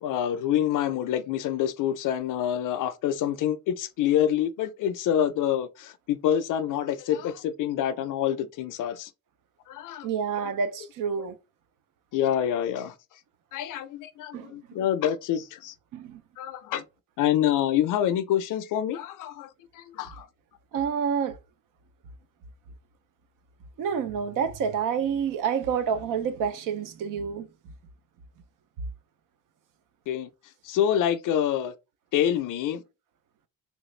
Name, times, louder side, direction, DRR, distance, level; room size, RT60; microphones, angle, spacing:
voice 1, 0.0-9.1 9.7-10.1 12.1-12.9 13.5-15.7 16.4-16.8 17.2-20.3 30.1-30.3 30.6-31.7 32.1-32.8, left 10 dB, 60° left, 0.5 m, -27 dB
voice 2, 10.0-11.3 14.3-14.5 15.9-16.2 20.7-21.4 23.8-27.5, right 7 dB, 60° right, 0.5 m, -28 dB
3.2 x 2.4 x 3.1 m
cardioid pair, 165°, 35 cm